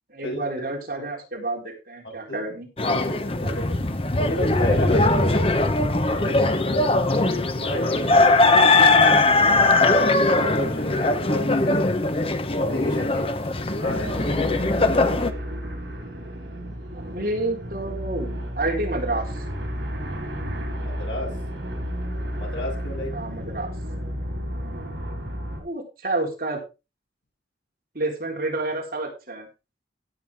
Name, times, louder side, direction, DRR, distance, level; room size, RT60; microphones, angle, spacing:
voice 1, 0.1-2.7 16.9-19.3 23.1-23.7 25.6-26.6 27.9-29.5, right 2 dB, 50° right, -1 dB, 4.1 m, -29 dB
voice 2, 2.0-2.4 2.8-3.8 4.2-5.5 6.1-6.9 7.5-9.6 9.9-11.8 12.6-13.3 13.7-14.5 20.8-21.4 22.4-23.1, equal, 80° left, -1 dB, 7.4 m, -32 dB
sound 1, 2.8-15.3, left 2 dB, 30° left, 0.9 m, -20 dB
sound 2, 13.8-25.6, equal, 75° right, 5.3 m, -32 dB
16.5 x 7.8 x 3.6 m, 0.29 s
head